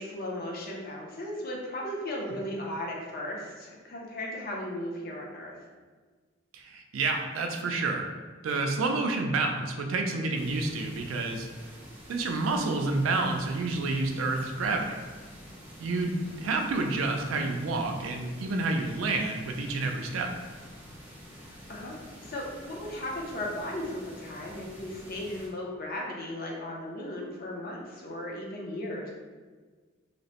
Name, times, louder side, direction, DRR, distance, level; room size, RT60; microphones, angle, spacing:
voice 1, 0.0-5.6 16.4-16.5 21.4-29.1, left 1 dB, 50° left, -2 dB, 0.5 m, -36 dB
voice 2, 6.5-8.1 8.4-11.5 12.1-15.0 15.8-20.3, right 3 dB, 90° right, 3 dB, 0.4 m, -29 dB
sound 1, 10.3-25.5, equal, 10° right, 0.5 m, -48 dB
2.8 x 2.0 x 2.8 m, 1.4 s
head